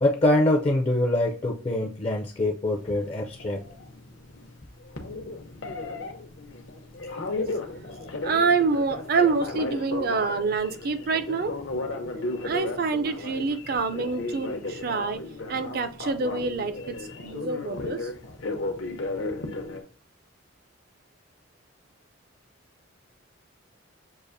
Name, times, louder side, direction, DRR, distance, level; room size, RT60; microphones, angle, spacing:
voice 1, 0.0-3.6, left 1 dB, 30° left, 1 dB, 0.4 m, -24 dB
Telephone, 2.7-19.8, left 2 dB, 75° left, 0.8 m, -35 dB
voice 2, 8.2-11.5 12.4-15.2 15.5-18.1, right 4 dB, 50° right, 10 dB, 0.4 m, -26 dB
6.5 x 2.5 x 2.6 m, 0.35 s
head